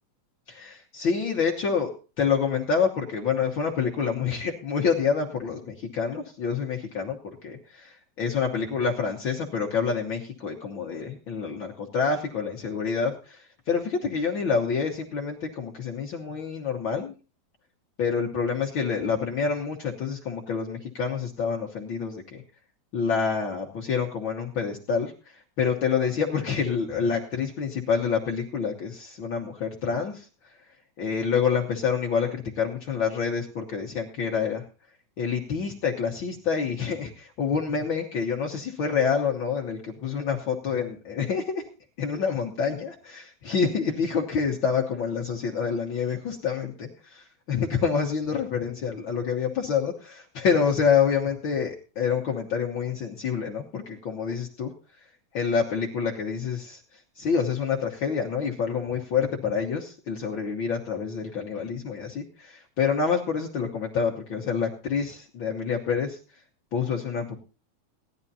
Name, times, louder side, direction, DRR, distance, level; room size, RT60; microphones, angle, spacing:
voice 1, 0.5-1.9 2.2-7.2 7.4-17.1 18.0-22.4 22.9-30.3 31.0-34.6 35.2-41.7 42.0-54.7 55.3-66.2 66.7-67.4, left 6 dB, 90° left, 0 dB, 1.0 m, -27 dB
18.0 x 11.0 x 2.8 m, 0.34 s
omnidirectional pair, 4.2 m